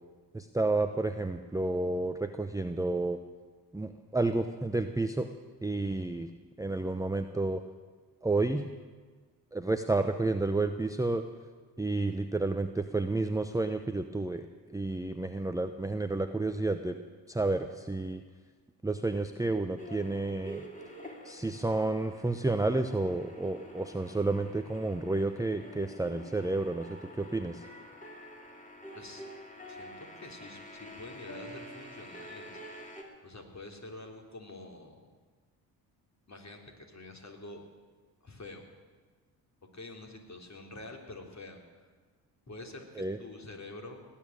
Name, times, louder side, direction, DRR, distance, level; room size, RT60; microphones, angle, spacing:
voice 1, 0.3-3.2 3.7-5.3 5.6-6.3 6.6-7.6 8.2-8.7 9.5-11.2 11.8-14.5 14.7-17.0 17.3-18.2 18.8-20.6 21.2-27.6 43.0-43.2, right 2 dB, 5° right, 7 dB, 0.8 m, -30 dB
sound 1, 19.8-33.0, equal, 15° left, 3.6 m, -48 dB
voice 2, 28.9-29.2 29.7-32.5 33.2-35.1 36.3-37.6 38.2-38.7 39.7-41.9 42.5-44.0, left 2 dB, 35° left, 2 dB, 3.6 m, -47 dB
18.5 x 8.8 x 8.9 m, 1.4 s
hypercardioid pair, 50°, 50 cm